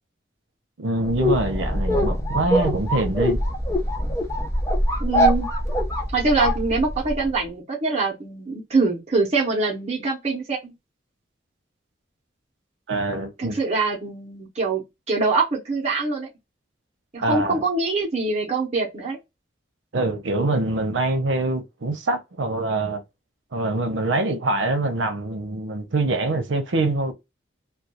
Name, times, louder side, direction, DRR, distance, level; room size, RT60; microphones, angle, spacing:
voice 1, 0.8-3.4 12.9-13.6 17.2-17.6 19.9-23.0 23.5-27.1, right 2 dB, 80° right, 0.6 m, -24 dB
sound 1, 1.0-7.3, equal, 15° left, 0.4 m, -23 dB
voice 2, 5.0-5.5 6.1-10.7 13.4-14.8 15.1-16.3 17.1-19.2, right 3 dB, 35° right, 0.7 m, -24 dB
2.3 x 2.2 x 2.8 m
head